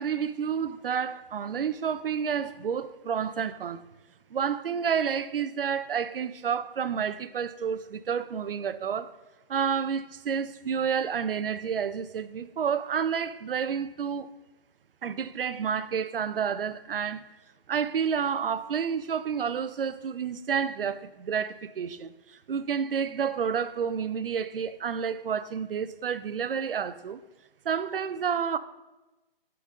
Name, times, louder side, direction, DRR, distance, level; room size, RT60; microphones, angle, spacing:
voice 1, 0.0-3.8 4.3-9.1 9.5-14.3 15.0-17.3 17.7-22.1 22.5-27.2 27.7-28.6, right 7 dB, 70° right, 0.5 m, -30 dB
6.6 x 3.9 x 5.4 m
hypercardioid pair, 180°, 29 cm